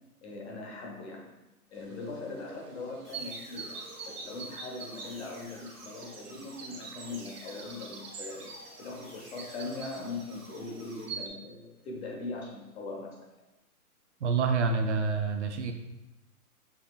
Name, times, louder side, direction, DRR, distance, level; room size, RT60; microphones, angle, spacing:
voice 1, 0.2-1.3 1.7-13.2, left 3 dB, 45° left, 0 dB, 1.1 m, -41 dB
sound 1, 1.7-11.3, right 5 dB, 90° right, 0.9 m, -45 dB
sound 2, 3.0-11.0, equal, 10° left, 0.6 m, -52 dB
voice 2, 14.2-15.7, right 4 dB, 50° right, 6 dB, 0.5 m, -27 dB
5.6 x 3.1 x 2.3 m, 0.97 s
hypercardioid pair, 145°, 45 cm